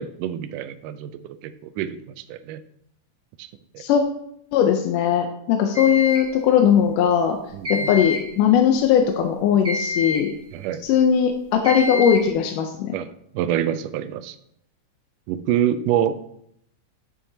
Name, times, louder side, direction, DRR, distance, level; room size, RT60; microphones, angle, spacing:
voice 1, 0.0-2.0 2.3-2.6 3.4-3.8 7.5-7.9 10.5-10.8 12.9-14.4 15.3-16.3, right 10 dB, 85° right, 12 dB, 2.1 m, -26 dB
voice 2, 4.5-7.4 7.7-10.3 10.8-13.0, left 8 dB, 85° left, 4 dB, 2.2 m, -19 dB
sound 1, 5.7-6.3 7.6-8.3 9.6-10.3 11.6-12.3, left 3 dB, 15° right, 1.4 m, -27 dB
11.0 x 7.4 x 2.8 m, 0.75 s
omnidirectional pair, 3.7 m